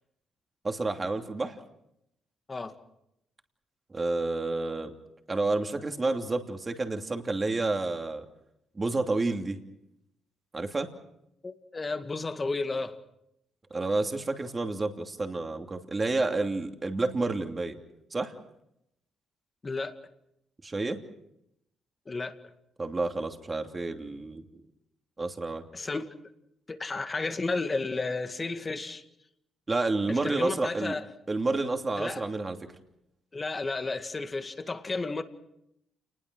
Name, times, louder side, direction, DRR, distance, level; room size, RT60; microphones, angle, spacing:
voice 1, 0.6-1.6 3.9-4.9 5.3-8.2 8.7-9.6 10.5-10.9 13.7-17.8 18.1-18.3 20.6-21.0 22.8-24.4 25.2-25.6 29.7-30.9 31.3-32.6, right 3 dB, 25° right, 2.9 m, -29 dB
voice 2, 11.4-13.0 19.6-19.9 22.1-22.4 25.7-26.1 26.7-29.0 30.1-31.0 32.0-32.2 33.3-35.2, left 3 dB, 30° left, 2.1 m, -32 dB
28.5 x 20.5 x 6.3 m
cardioid pair, 90°, 0 cm